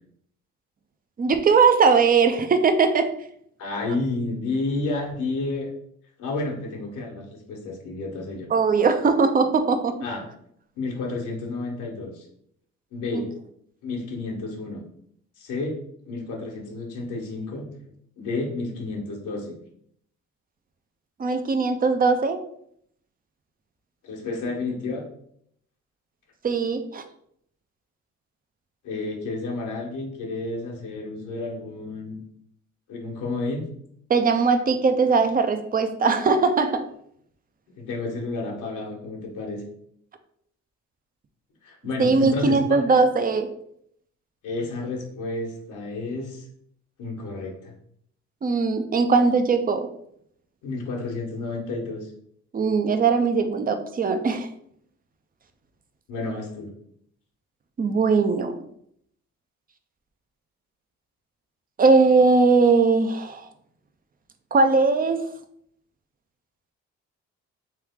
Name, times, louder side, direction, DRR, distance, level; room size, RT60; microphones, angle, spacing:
voice 1, 1.2-3.1 8.5-10.0 13.1-13.2 21.2-22.4 26.4-27.0 34.1-36.9 42.0-43.5 48.4-49.9 52.5-54.5 57.8-58.5 61.8-63.5 64.5-65.2, right 4 dB, 30° right, 8 dB, 0.5 m, -20 dB
voice 2, 3.6-5.7 6.2-8.5 9.0-9.1 10.0-10.2 10.7-12.3 12.9-13.3 13.8-14.8 15.4-15.7 16.1-17.7 18.2-19.6 24.0-25.0 28.8-32.2 32.9-33.7 37.7-39.6 41.6-42.8 44.4-46.5 47.0-47.7 50.6-52.1 56.1-56.7, left 3 dB, 85° left, 0 dB, 1.2 m, -31 dB
3.4 x 3.2 x 3.6 m, 0.69 s
cardioid pair, 90°, 30 cm